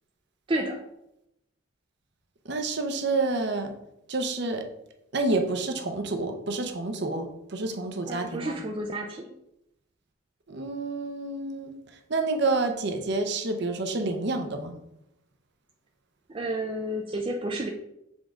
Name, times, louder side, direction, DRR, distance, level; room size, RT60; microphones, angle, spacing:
voice 1, 0.5-0.8 8.1-9.3 16.3-17.7, right 1 dB, 25° right, 1 dB, 0.4 m, -31 dB
voice 2, 2.4-3.7 4.1-4.7 5.1-8.6 10.5-11.7 12.1-14.8, right 3 dB, 50° right, 5 dB, 0.7 m, -28 dB
7.1 x 3.7 x 3.7 m, 0.84 s
head